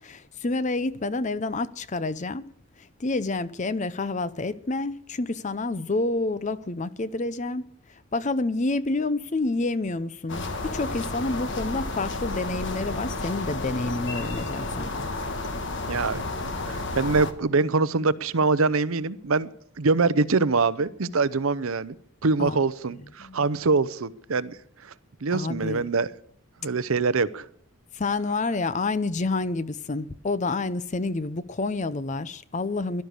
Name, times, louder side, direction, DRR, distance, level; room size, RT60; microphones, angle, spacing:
voice 1, 0.0-2.5 2.8-7.6 7.9-10.4 10.7-15.1 22.4-22.6 23.2-23.5 25.3-25.8 27.9-33.0, left 3 dB, 35° left, 0.6 m, -28 dB
sound 1, 10.3-17.3, left 2 dB, 55° left, 1.5 m, -31 dB
voice 2, 15.9-19.5 19.8-22.0 22.2-24.9 25.2-26.1 26.6-27.5, right 4 dB, 70° right, 0.7 m, -24 dB
17.0 x 12.0 x 6.7 m
head